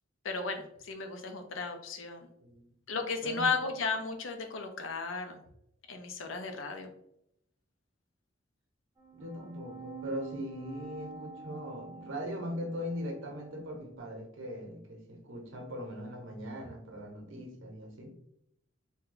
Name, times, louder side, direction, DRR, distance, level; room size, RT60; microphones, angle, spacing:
voice 1, 0.2-2.3 2.9-5.4 5.9-6.9, left 4 dB, 80° left, 5 dB, 0.5 m, -34 dB
sound 1, 9.0-14.0, right 6 dB, 15° right, 0.7 m, -48 dB
voice 2, 9.1-18.1, equal, 75° right, 3 dB, 0.8 m, -40 dB
2.7 x 2.2 x 3.8 m, 0.76 s
head